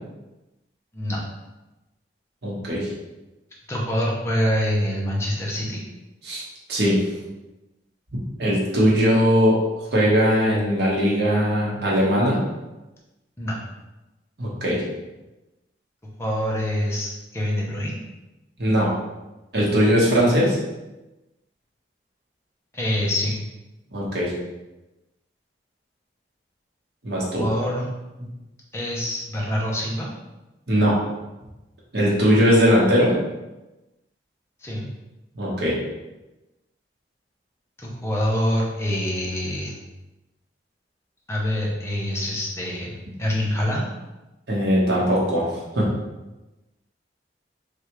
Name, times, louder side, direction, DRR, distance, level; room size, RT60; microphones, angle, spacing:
voice 1, 2.4-2.9 6.2-6.4 6.7-7.0 8.4-9.6 9.9-12.4 14.4-14.8 18.6-18.9 19.5-20.6 23.9-24.3 27.0-27.5 30.7-31.0 31.9-33.1 35.3-35.8 44.5-45.5 45.7-45.9, equal, 65° right, -5 dB, 1.0 m, -19 dB
voice 2, 3.7-5.8 13.4-13.6 16.2-18.0 22.7-23.4 27.4-27.8 28.7-30.1 34.6-34.8 37.8-39.8 41.3-43.9, equal, 15° left, -4 dB, 0.6 m, -25 dB
3.3 x 2.4 x 3.0 m, 1.0 s
head